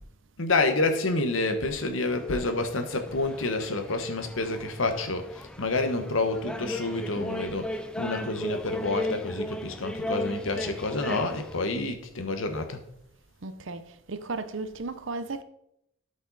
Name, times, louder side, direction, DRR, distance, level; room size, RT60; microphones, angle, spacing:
voice 1, 0.4-12.8, left 2 dB, 70° left, 1.2 m, -28 dB
sound 1, 2.1-11.6, left 1 dB, 5° left, 0.5 m, -36 dB
voice 2, 13.4-13.8 14.1-15.4, right 3 dB, 65° right, 0.7 m, -34 dB
12.5 x 5.4 x 4.0 m
head